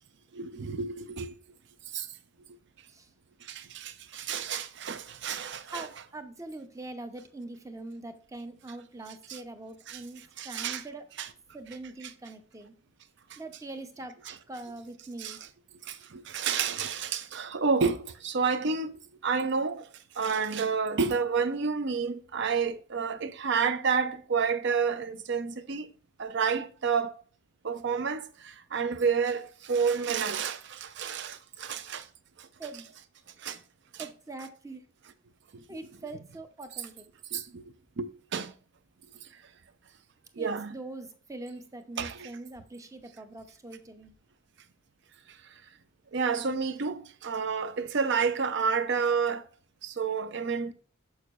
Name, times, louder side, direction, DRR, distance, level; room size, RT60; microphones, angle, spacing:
voice 1, 0.3-1.3 1.9-2.1 3.4-5.9 9.3-9.4 9.9-10.0 10.4-10.8 11.2-11.3 13.3-13.4 14.3-14.4 15.2-15.4 15.9-18.9 19.2-19.8 20.2-25.9 26.2-27.1 27.6-32.1 32.4-32.5 33.4-33.6 33.9-34.1 35.7-35.8 37.3-38.5 40.4-40.8 42.0-42.3 46.1-49.4 49.8-50.7, right 5 dB, 60° right, 0.5 m, -30 dB
voice 2, 5.7-11.0 11.5-12.7 13.4-14.1 14.5-15.4 32.6-32.9 34.0-34.8 35.7-37.1 40.4-44.1, right 2 dB, 15° right, 0.6 m, -43 dB
6.9 x 6.4 x 2.4 m
head